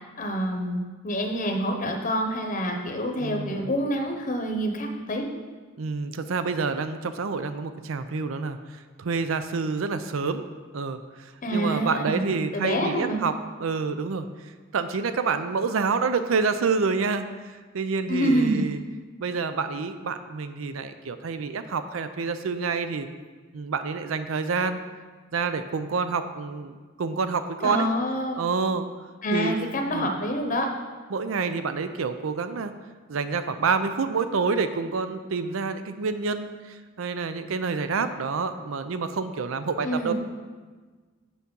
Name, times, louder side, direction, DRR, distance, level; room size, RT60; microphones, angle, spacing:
voice 1, 0.2-5.2 11.4-13.2 18.1-18.7 27.6-28.4 29.2-30.7 39.8-40.1, equal, 40° left, 3 dB, 0.8 m, -27 dB
voice 2, 3.2-3.7 5.8-10.5 10.7-13.3 13.6-18.8 19.2-23.1 23.5-24.8 25.3-27.9 28.4-28.9 29.3-29.6 29.9-30.1 31.1-32.7 33.1-40.1, right 4 dB, 90° right, 10 dB, 0.5 m, -28 dB
7.0 x 6.0 x 5.3 m, 1.4 s
head